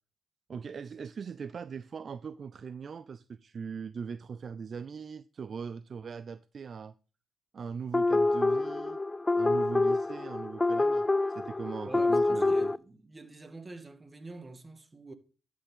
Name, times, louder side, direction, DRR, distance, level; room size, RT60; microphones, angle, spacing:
voice 1, 0.5-6.9 7.5-9.0 9.4-12.7, right 6 dB, 55° right, 0.4 m, -40 dB
sound 1, 7.9-12.8, left 2 dB, 25° left, 0.4 m, -27 dB
voice 2, 11.8-15.1, right 2 dB, 30° right, 1.7 m, -46 dB
11.5 x 6.7 x 3.6 m
supercardioid pair, 50°, 0 cm